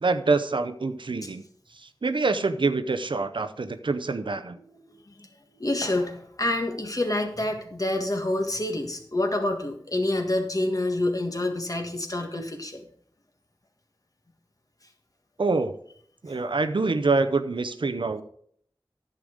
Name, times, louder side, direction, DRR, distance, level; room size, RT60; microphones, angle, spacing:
voice 1, 0.0-1.4 1.8-4.6 15.4-15.7 16.2-18.2, right 3 dB, 75° right, 10 dB, 0.7 m, -25 dB
voice 2, 4.9-5.3 5.5-12.9 16.3-16.4, left 1 dB, 45° left, 4 dB, 1.6 m, -28 dB
10.5 x 6.9 x 5.0 m, 0.63 s
wide cardioid pair, 50°, 8 cm